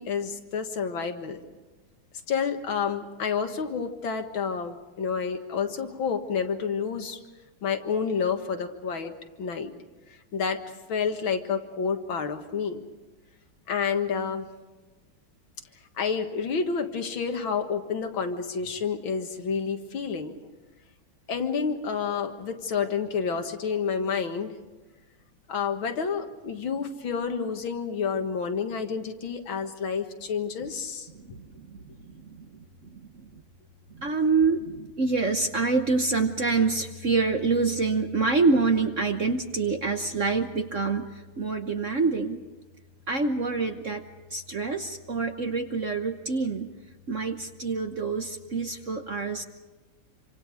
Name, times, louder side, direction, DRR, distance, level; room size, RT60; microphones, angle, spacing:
voice 1, 0.0-1.4 2.3-7.2 7.6-9.1 9.4-9.7 10.3-10.6 10.9-12.8 13.7-14.5 16.0-20.3 21.3-24.6 25.5-31.1, left 6 dB, 65° left, 6 dB, 2.3 m, -29 dB
voice 2, 31.1-33.4 33.9-42.4 43.1-44.0 44.3-46.7 47.1-49.4, right 4 dB, 45° right, 6 dB, 1.1 m, -27 dB
27.0 x 26.0 x 5.0 m, 1.2 s
omnidirectional pair, 2.4 m